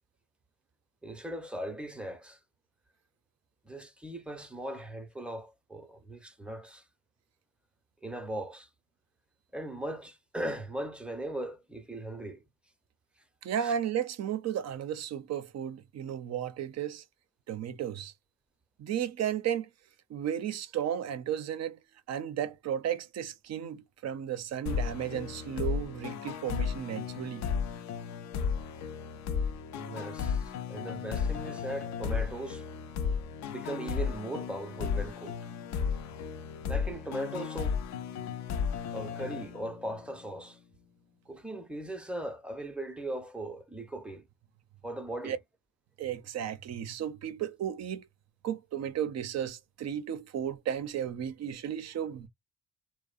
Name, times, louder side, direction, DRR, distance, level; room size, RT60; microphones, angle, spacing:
voice 1, 1.0-2.4 3.6-6.8 8.0-8.7 9.5-12.4 13.6-13.7 29.7-32.6 33.5-35.4 36.7-37.8 38.9-40.6 41.3-44.3 44.8-45.4, right 1 dB, 5° right, 0.6 m, -39 dB
voice 2, 13.4-17.0 17.5-18.1 18.8-19.7 20.1-21.8 22.1-27.5 45.2-45.4 46.0-48.1 48.4-52.3, right 9 dB, 60° right, 0.6 m, -34 dB
sound 1, 24.7-40.1, left 6 dB, 70° left, 0.5 m, -34 dB
2.7 x 2.1 x 2.4 m
cardioid pair, 90°, 30 cm